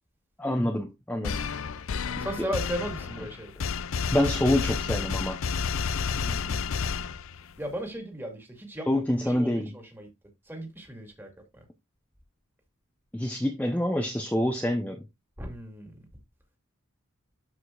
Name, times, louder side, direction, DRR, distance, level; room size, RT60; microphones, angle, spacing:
voice 1, 0.4-1.4 2.2-2.5 4.1-5.4 8.9-9.7 13.1-15.0, left 1 dB, 5° left, 0.8 m, -27 dB
sound 1, 1.2-7.6, left 6 dB, 70° left, 0.5 m, -31 dB
voice 2, 2.2-3.5 6.1-6.8 7.6-10.1 10.5-11.6 15.4-16.1, right 1 dB, 10° right, 2.2 m, -37 dB
12.5 x 5.0 x 2.4 m
head